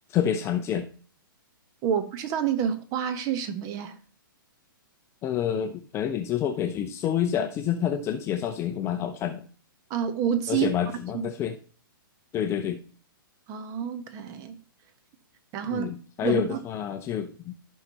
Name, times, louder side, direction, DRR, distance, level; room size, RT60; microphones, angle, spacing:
voice 1, 0.1-0.9 5.2-9.4 10.5-11.5 12.3-12.8 15.7-17.5, left 9 dB, 20° left, 0.6 m, -28 dB
voice 2, 1.8-3.9 9.9-10.7 11.1-11.2 13.5-14.6 15.5-15.9 16.2-16.6, right 8 dB, 30° right, 1.2 m, -28 dB
14.0 x 5.6 x 3.0 m
figure-of-eight pair, 120°, 12 cm